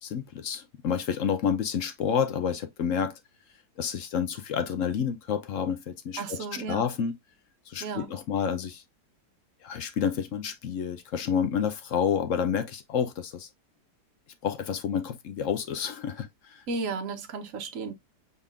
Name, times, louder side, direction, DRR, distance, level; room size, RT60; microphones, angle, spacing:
voice 1, 0.0-3.2 3.8-7.1 7.7-8.8 9.6-13.5 14.4-16.6, left 7 dB, 60° left, 0.9 m, -29 dB
voice 2, 6.2-6.9 7.8-8.1 16.7-18.0, right 4 dB, 55° right, 1.2 m, -34 dB
5.3 x 4.0 x 2.4 m
omnidirectional pair, 1.8 m